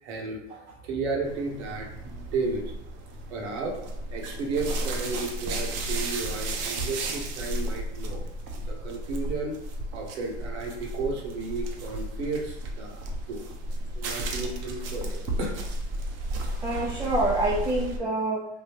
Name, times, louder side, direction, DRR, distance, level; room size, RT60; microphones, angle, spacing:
voice 1, 0.0-2.7 3.3-3.8 4.1-8.2 8.6-9.6 9.9-13.0 13.3-13.4 13.9-15.6, right 3 dB, 70° right, 0 dB, 1.0 m, -33 dB
sound 1, 1.2-18.0, right 1 dB, 45° right, 0.7 m, -33 dB
voice 2, 16.4-18.5, right 2 dB, 5° right, -5 dB, 0.5 m, -27 dB
3.6 x 2.3 x 2.8 m, 0.80 s
hypercardioid pair, 95°, 35 cm